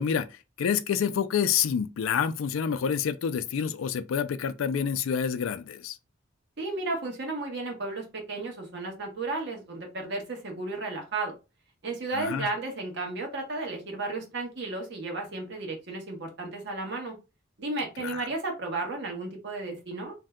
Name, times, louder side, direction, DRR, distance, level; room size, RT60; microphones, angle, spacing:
voice 1, 0.0-6.0 12.1-12.5 18.0-18.2, left 7 dB, 90° left, 0.3 m, -28 dB
voice 2, 6.6-11.3 11.8-17.2 17.6-20.1, right 2 dB, 60° right, 1.1 m, -33 dB
2.6 x 2.2 x 3.5 m
head